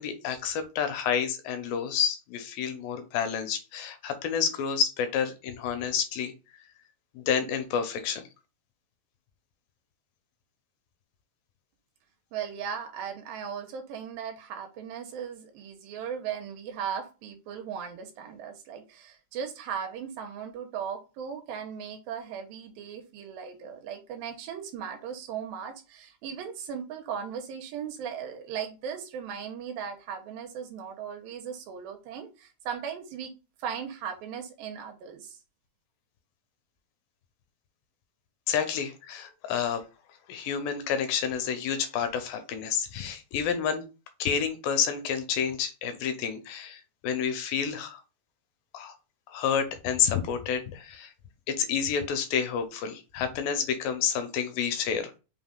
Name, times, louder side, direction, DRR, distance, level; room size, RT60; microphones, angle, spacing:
voice 1, 0.0-6.3 7.2-8.2 38.5-39.8 40.3-43.8 44.2-48.0 48.7-48.9 49.3-51.1 51.5-55.2, left 7 dB, 80° left, 8 dB, 2.5 m, -29 dB
voice 2, 12.3-33.3 33.6-35.4, right 7 dB, 85° right, 4 dB, 2.7 m, -37 dB
5.7 x 3.7 x 2.3 m, 0.30 s
omnidirectional pair, 4.2 m